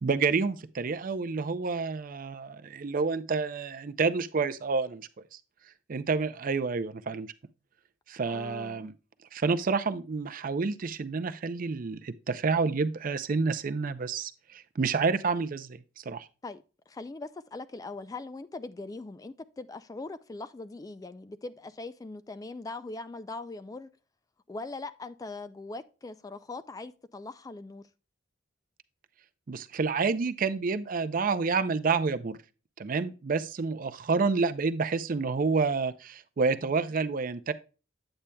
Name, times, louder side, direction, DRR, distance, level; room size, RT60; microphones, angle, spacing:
voice 1, 0.0-5.0 5.9-7.3 8.1-8.9 9.3-16.3 29.5-32.4 32.8-37.5, right 4 dB, 45° right, 0.5 m, -29 dB
voice 2, 8.3-8.9 16.4-23.9 24.5-27.8, left 3 dB, 20° left, 0.3 m, -41 dB
8.8 x 8.3 x 2.2 m
head